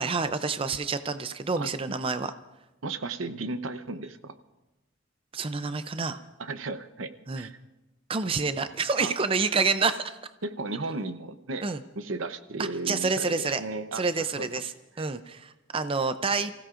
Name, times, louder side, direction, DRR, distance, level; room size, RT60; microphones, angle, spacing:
voice 1, 0.0-2.3 5.3-6.2 7.3-7.5 8.1-10.2 11.6-11.8 12.6-13.6 13.9-14.7 15.0-16.5, right 4 dB, 30° right, 11 dB, 0.5 m, -28 dB
voice 2, 1.6-2.0 2.8-4.3 6.4-7.6 9.0-9.1 10.4-11.6 12.0-14.5, right 3 dB, 90° right, 10 dB, 0.8 m, -35 dB
29.5 x 16.0 x 2.5 m, 1.0 s
head